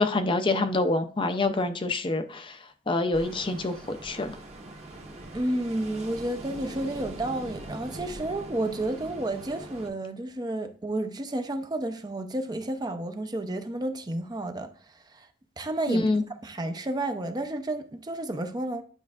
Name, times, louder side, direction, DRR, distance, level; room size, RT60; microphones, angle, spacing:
voice 1, 0.0-2.6 2.9-4.3 15.9-16.2, left 2 dB, 30° left, 0.5 m, -26 dB
Ocean, 3.1-9.9, right 1 dB, 40° right, 1.2 m, -42 dB
voice 2, 5.3-14.7 15.1-15.3 15.6-16.1 16.4-18.8, right 1 dB, 25° right, 0.6 m, -31 dB
9.8 x 5.2 x 2.4 m
head